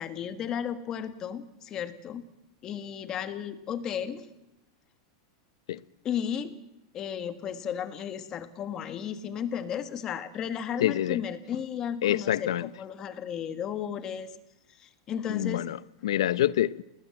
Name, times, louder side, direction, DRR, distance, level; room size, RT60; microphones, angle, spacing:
voice 1, 0.0-2.2 2.6-4.2 6.0-6.6 6.9-14.3 14.8-15.7, left 8 dB, 20° left, 1.5 m, -34 dB
voice 2, 10.8-11.2 12.0-12.7 15.3-16.8, left 12 dB, 80° left, 0.8 m, -27 dB
28.5 x 19.5 x 7.8 m
supercardioid pair, 175°, 3 cm